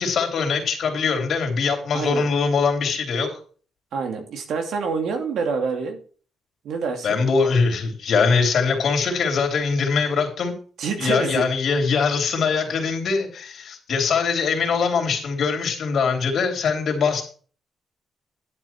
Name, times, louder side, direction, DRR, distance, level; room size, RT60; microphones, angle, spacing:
voice 1, 0.0-3.4 7.0-10.5 11.0-17.2, left 5 dB, 55° left, 3 dB, 3.4 m, -22 dB
voice 2, 1.9-2.3 3.9-6.0 6.6-7.2 10.8-11.5, right 5 dB, 75° right, 5 dB, 2.7 m, -27 dB
11.5 x 7.7 x 4.6 m, 0.41 s
cardioid pair, 140°, 0 cm